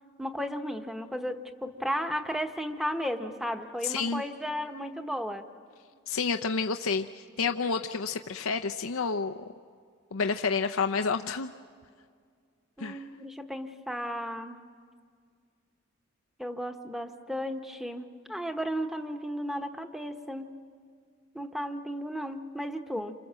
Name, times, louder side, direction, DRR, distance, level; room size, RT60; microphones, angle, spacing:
voice 1, 0.2-5.4 12.8-14.6 16.4-20.5 21.3-23.1, equal, ahead, 6 dB, 1.0 m, -34 dB
voice 2, 3.8-4.2 6.1-9.4 10.1-11.5 12.8-13.0, left 5 dB, 85° left, 6 dB, 0.7 m, -29 dB
28.5 x 26.5 x 7.6 m, 2.1 s
head